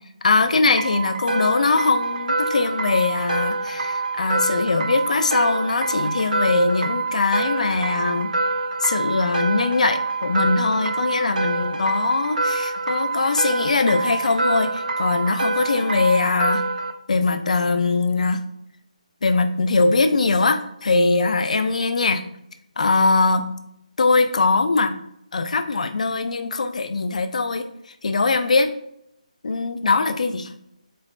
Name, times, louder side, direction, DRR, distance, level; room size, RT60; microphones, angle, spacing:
voice 1, 0.2-8.3 8.8-16.6 17.1-18.4 19.2-22.3 22.8-23.5 24.0-24.9 25.3-27.7 28.0-28.7 29.4-30.5, left 3 dB, 60° left, 9 dB, 0.4 m, -21 dB
sound 1, 0.8-16.9, right 3 dB, 80° right, 0.5 m, -26 dB
4.5 x 3.2 x 2.4 m, 0.77 s
hypercardioid pair, 170°, 4 cm